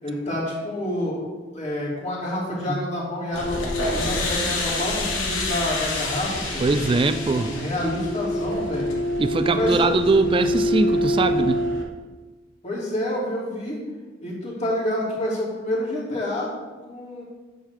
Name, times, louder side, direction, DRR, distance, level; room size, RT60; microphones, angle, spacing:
voice 1, 0.0-1.2 1.5-6.7 7.3-8.9 9.4-9.9 12.6-13.8 14.2-16.5 16.8-17.2, left 1 dB, 35° left, -5 dB, 2.5 m, -28 dB
sound 1, 3.3-11.8, left 1 dB, 70° left, 1.2 m, -26 dB
voice 2, 6.6-7.5 9.2-11.7, right 3 dB, 25° right, 10 dB, 0.3 m, -22 dB
9.0 x 6.4 x 3.4 m, 1.2 s
head